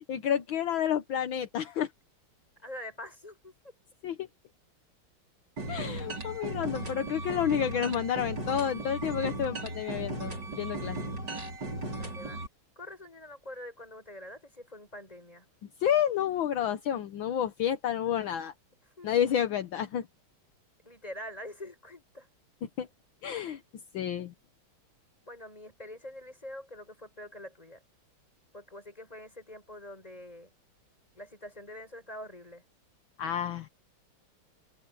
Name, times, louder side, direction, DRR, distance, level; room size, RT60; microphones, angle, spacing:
voice 1, 0.1-1.9 4.0-4.3 5.7-11.0 15.8-18.5 19.0-20.0 22.8-22.9 23.2-23.6 23.9-24.3 33.2-33.7, left 9 dB, 70° left, 1.7 m, -30 dB
voice 2, 2.6-3.7 11.9-12.4 12.8-15.5 18.9-19.1 20.8-22.3 25.2-27.8 28.5-30.5 31.1-32.6, left 1 dB, 15° left, 6.5 m, -45 dB
sound 1, 5.6-12.5, right 2 dB, 55° right, 5.7 m, -36 dB
omnidirectional pair, 2.3 m